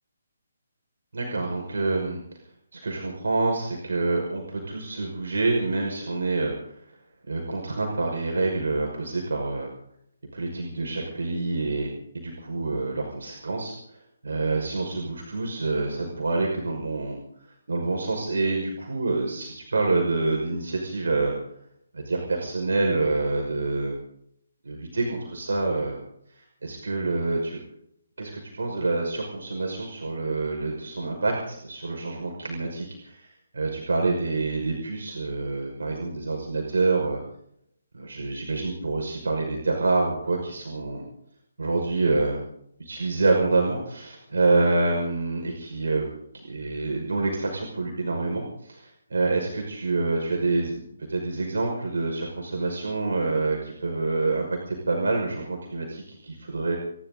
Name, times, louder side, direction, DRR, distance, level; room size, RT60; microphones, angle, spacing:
voice 1, 1.1-2.2 2.7-6.5 7.3-9.7 10.3-17.2 17.7-21.3 21.9-23.9 24.6-26.0 26.3-27.6 28.2-37.2 37.9-41.1 41.6-42.4 42.8-46.1 46.3-50.8 51.1-56.8, right 3 dB, 70° right, 0 dB, 5.7 m, -27 dB
29.0 x 12.0 x 4.0 m, 0.69 s
figure-of-eight pair, 150°, 0 cm